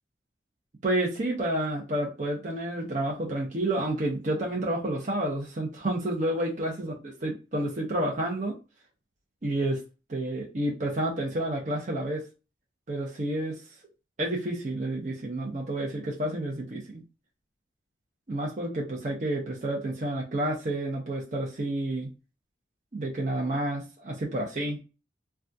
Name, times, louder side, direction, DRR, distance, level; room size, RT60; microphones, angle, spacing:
voice 1, 0.8-8.6 9.4-9.8 10.1-12.2 12.9-13.6 14.2-17.0 18.3-22.1 22.9-24.8, right 1 dB, 40° right, -2 dB, 0.6 m, -30 dB
3.4 x 2.3 x 2.6 m, 0.31 s
head